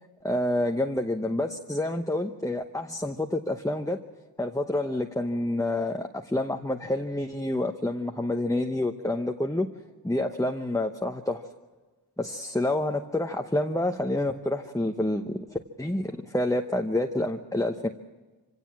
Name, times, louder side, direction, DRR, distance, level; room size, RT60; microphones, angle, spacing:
voice 1, 0.2-4.0 4.4-9.7 10.0-11.5 12.2-17.9, left 1 dB, 10° left, 5 dB, 0.9 m, -28 dB
25.5 x 17.0 x 7.5 m, 1.3 s
wide cardioid pair, 45°, 41 cm